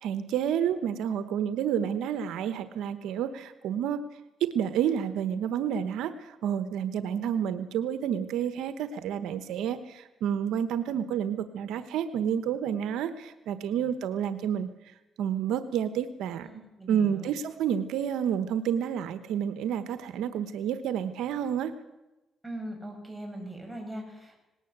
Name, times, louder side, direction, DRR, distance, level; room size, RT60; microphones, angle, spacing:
voice 1, 0.0-4.0 4.4-14.7 15.2-16.6 16.9-21.7, right 9 dB, 85° right, 11 dB, 1.1 m, -29 dB
voice 2, 16.5-17.3 22.4-24.4, right 1 dB, 5° right, 1 dB, 7.4 m, -40 dB
19.0 x 19.0 x 8.1 m, 1.0 s
cardioid pair, 90°, 0 cm